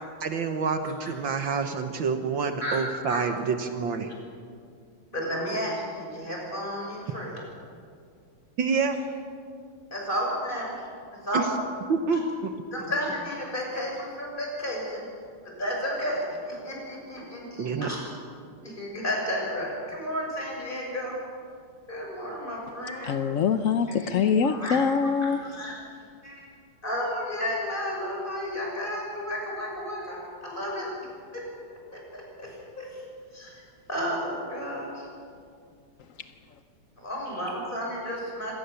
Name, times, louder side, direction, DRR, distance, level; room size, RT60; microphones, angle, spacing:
voice 1, 0.2-4.1 8.6-9.0 11.3-11.4 11.9-12.5 17.6-17.9, right 5 dB, 65° right, 7 dB, 1.8 m, -27 dB
voice 2, 5.1-7.4 9.9-10.8 11.2-11.5 12.1-12.2 12.7-15.1 15.4-18.0 18.6-21.1 21.9-23.2 23.9-24.8 25.4-25.8 26.2-26.4 26.8-30.9 31.3-31.4 31.9-33.0 33.3-33.6 33.9-35.1 37.0-38.5, equal, 20° left, -2 dB, 6.5 m, -32 dB
voice 3, 23.0-25.4, left 6 dB, 75° left, 9 dB, 0.7 m, -24 dB
26.0 x 18.5 x 7.0 m, 2.3 s
omnidirectional pair, 2.4 m